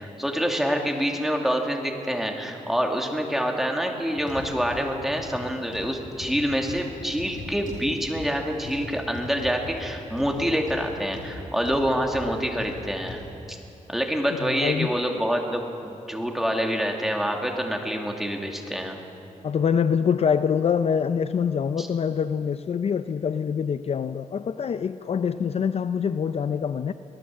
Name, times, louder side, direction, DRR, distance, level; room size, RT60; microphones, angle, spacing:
voice 1, 0.0-13.2 13.9-19.0 21.8-21.9, equal, ahead, 1 dB, 2.4 m, -26 dB
sound 1, 4.2-13.3 13.8-14.0 14.6-14.7, left 2 dB, 75° left, 6.8 m, -40 dB
voice 2, 14.4-14.9 19.4-26.9, left 7 dB, 50° left, 11 dB, 0.5 m, -25 dB
24.5 x 17.5 x 7.5 m, 2.8 s
wide cardioid pair, 140°, 13 cm